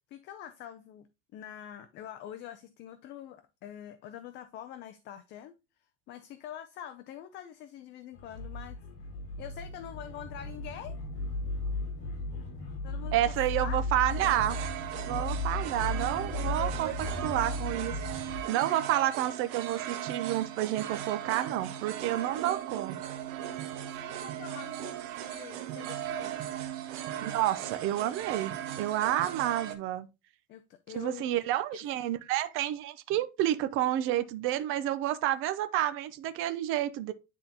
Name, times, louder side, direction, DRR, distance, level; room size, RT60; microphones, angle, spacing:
voice 1, 0.1-1.1 1.3-5.5 6.1-8.8 9.4-11.0 12.8-13.8 23.4-26.3 30.5-31.3 31.7-31.8, left 10 dB, 35° left, 0.5 m, -45 dB
sound 1, 8.1-18.4, left 2 dB, 60° left, 2.3 m, -36 dB
voice 2, 13.1-14.6 15.1-18.0 18.5-23.0 27.2-30.1 30.9-37.1, right 13 dB, 40° right, 0.6 m, -30 dB
sound 2, 14.1-29.7, right 11 dB, 60° right, 0.9 m, -37 dB
9.9 x 3.8 x 2.8 m
cardioid pair, 170°, 31 cm